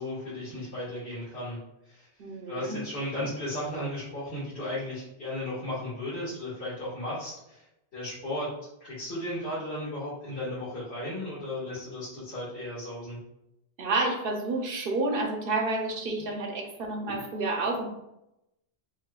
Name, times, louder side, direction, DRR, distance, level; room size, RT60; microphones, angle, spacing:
voice 1, 0.0-1.6 1.8-2.1 2.5-7.6 7.9-8.5 8.8-13.2, left 1 dB, 70° left, -12 dB, 1.8 m, -35 dB
voice 2, 2.2-2.8 3.2-3.3 13.8-17.9, right 2 dB, 60° right, 2 dB, 0.8 m, -30 dB
5.7 x 2.2 x 2.2 m, 0.86 s
omnidirectional pair, 1.1 m